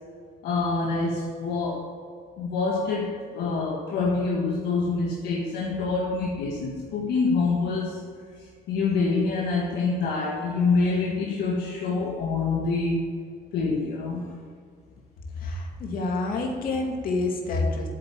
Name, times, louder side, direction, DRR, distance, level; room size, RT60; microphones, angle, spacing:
voice 1, 0.4-1.9 2.4-8.0 8.7-13.1 13.5-14.2, left 4 dB, 80° left, -2 dB, 1.6 m, -26 dB
voice 2, 15.4-17.9, left 3 dB, 60° left, 1 dB, 2.4 m, -28 dB
9.2 x 7.5 x 7.7 m, 2.1 s
cardioid pair, 110°, 17 cm